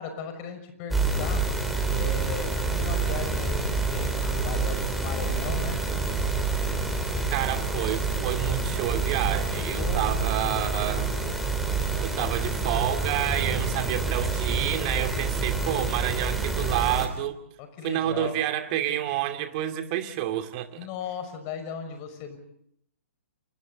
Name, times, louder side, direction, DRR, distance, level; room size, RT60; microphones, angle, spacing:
voice 1, 0.0-1.5 1.9-5.8 9.8-10.0 17.6-18.4 20.8-22.4, left 6 dB, 30° left, 7 dB, 5.8 m, -37 dB
sound 1, 0.9-17.1, right 4 dB, ahead, 3.7 m, -27 dB
voice 2, 7.3-11.1 12.0-17.4 17.8-20.9, right 12 dB, 35° right, 6 dB, 2.4 m, -29 dB
29.5 x 28.5 x 4.1 m, 0.70 s
figure-of-eight pair, 125°, 7 cm